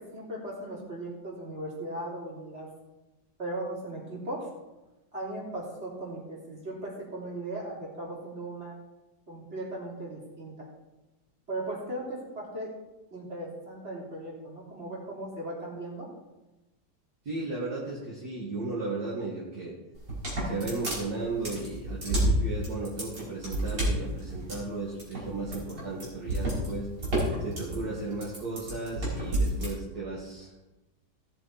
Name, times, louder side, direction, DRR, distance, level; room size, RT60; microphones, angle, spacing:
voice 1, 0.0-2.7 3.4-4.5 5.1-8.7 9.3-10.7 11.5-12.7 13.1-16.1, right 1 dB, 35° right, -4 dB, 3.6 m, -37 dB
voice 2, 17.2-19.7 20.4-26.9 27.4-30.6, right 3 dB, 60° right, -6 dB, 2.4 m, -35 dB
sound 1, 20.0-29.7, right 1 dB, 75° right, 5.4 m, -30 dB
17.0 x 6.9 x 4.1 m, 1.0 s
omnidirectional pair, 1.9 m